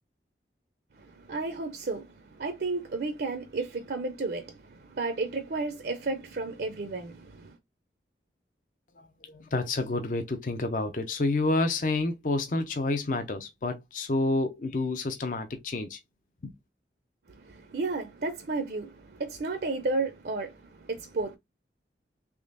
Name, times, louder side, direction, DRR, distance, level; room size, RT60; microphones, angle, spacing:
voice 1, 0.9-7.6 17.3-21.4, right 3 dB, 60° right, 0.5 m, -33 dB
voice 2, 9.3-16.0, left 2 dB, 45° left, 0.5 m, -29 dB
3.6 x 3.2 x 2.5 m
head